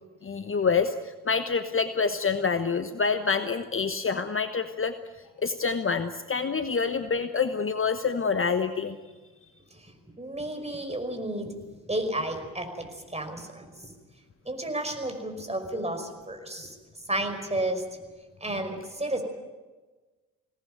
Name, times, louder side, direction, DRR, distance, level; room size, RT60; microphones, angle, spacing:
voice 1, 0.2-5.0 5.4-9.0, left 5 dB, 30° left, 9 dB, 1.2 m, -27 dB
voice 2, 9.7-11.5 11.9-13.9 14.5-16.8 17.1-17.8 18.4-19.2, right 1 dB, 15° right, 5 dB, 5.4 m, -32 dB
22.0 x 18.0 x 9.4 m, 1.3 s
hypercardioid pair, 40°, 41 cm